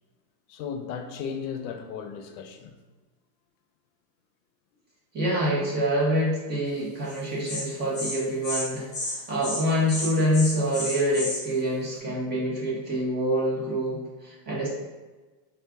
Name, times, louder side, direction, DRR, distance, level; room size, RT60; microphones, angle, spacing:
voice 1, 0.5-2.8, left 6 dB, 80° left, 6 dB, 0.7 m, -35 dB
voice 2, 5.1-14.7, equal, 20° right, -5 dB, 1.1 m, -26 dB
Insect, 7.1-7.2 7.5-7.6 7.9-8.2 8.4-8.6 8.9-9.2 9.4-9.6 9.9-11.4, left 1 dB, 15° left, 0.8 m, -32 dB
4.5 x 2.4 x 3.5 m, 1.3 s
supercardioid pair, 150°, 49 cm